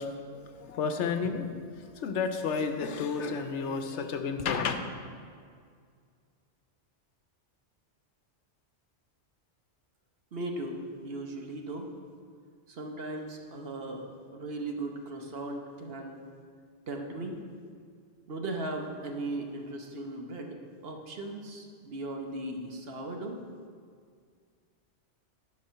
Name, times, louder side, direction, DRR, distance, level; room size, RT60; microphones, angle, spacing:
voice 1, 0.0-1.5 2.0-4.8, left 5 dB, 75° left, 7 dB, 1.0 m, -31 dB
voice 2, 10.3-11.9 12.7-16.2 16.9-17.4 18.3-20.6 20.8-23.4, right 2 dB, 60° right, 2 dB, 1.2 m, -37 dB
10.5 x 5.2 x 5.7 m, 2.1 s
omnidirectional pair, 1.2 m